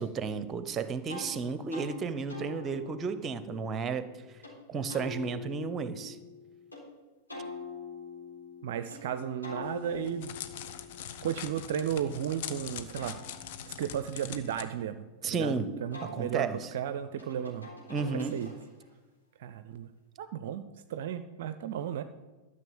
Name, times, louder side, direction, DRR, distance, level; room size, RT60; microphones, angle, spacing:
voice 1, 0.0-4.1 4.7-6.2 15.2-15.8 16.0-16.7 17.9-18.4, right 5 dB, 25° right, 12 dB, 0.8 m, -33 dB
sound 1, 1.1-1.3 1.7-1.9 2.3-4.5 4.9-6.8 7.3-9.0 9.4-12.3 12.7-15.4 15.9-18.9, left 3 dB, 80° left, 4.1 m, -46 dB
voice 2, 8.6-10.3 11.2-13.2 13.7-15.0 15.2-15.5 15.8-17.7 18.3-18.5 19.4-19.9 20.2-22.0, right 9 dB, 55° right, 12 dB, 0.5 m, -34 dB
Crackle, 9.6-14.6, left 9 dB, 50° left, 0.8 m, -42 dB
12.5 x 6.5 x 7.1 m, 1.2 s
figure-of-eight pair, 90°, 0 cm